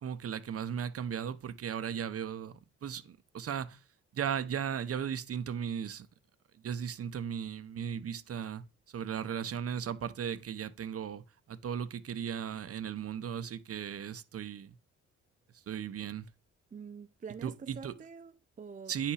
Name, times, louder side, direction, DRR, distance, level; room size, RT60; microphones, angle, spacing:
voice 1, 0.0-2.5 2.8-3.8 4.1-6.1 6.6-8.6 8.9-11.2 11.5-14.7 15.7-16.2 17.4-17.9 18.9-19.1, right 8 dB, 50° right, 1.0 m, -36 dB
voice 2, 16.7-18.9, right 6 dB, 25° right, 0.6 m, -46 dB
9.6 x 5.8 x 4.9 m
cardioid pair, 90°, 30 cm